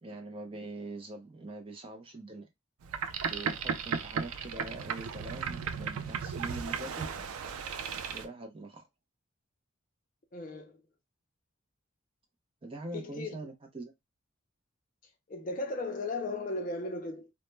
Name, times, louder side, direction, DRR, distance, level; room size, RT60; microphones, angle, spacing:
voice 1, 0.0-2.5 3.2-7.1 8.1-8.9 12.6-13.9, right 2 dB, 25° right, 0.4 m, -43 dB
Boat Water vehicle, 2.8-8.3, right 6 dB, 90° right, 0.4 m, -35 dB
voice 2, 10.3-10.8 12.9-13.4 15.3-17.3, left 2 dB, 40° left, 0.4 m, -36 dB
2.1 x 2.0 x 3.1 m
head